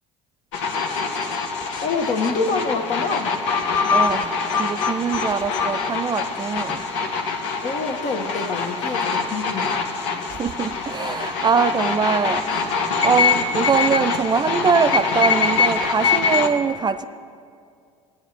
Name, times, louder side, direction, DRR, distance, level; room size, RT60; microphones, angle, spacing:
sound 1, 0.5-16.5, left 5 dB, 80° left, 0.8 m, -24 dB
voice 1, 1.8-3.4 7.6-9.8, left 4 dB, 50° left, 1.1 m, -26 dB
voice 2, 3.9-6.9 10.3-17.0, right 6 dB, 30° right, 0.4 m, -23 dB
17.0 x 9.1 x 2.9 m
hypercardioid pair, 65°, 15 cm